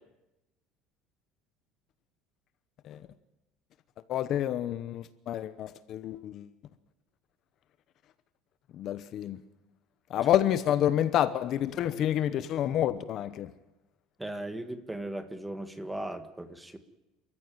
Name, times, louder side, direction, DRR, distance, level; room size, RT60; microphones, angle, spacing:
voice 1, 4.1-6.5 8.7-9.4 10.1-13.5, left 11 dB, 40° left, 1.0 m, -28 dB
voice 2, 14.2-16.8, right 1 dB, 5° right, 1.6 m, -37 dB
29.0 x 14.5 x 9.2 m
cardioid pair, 165°, 0 cm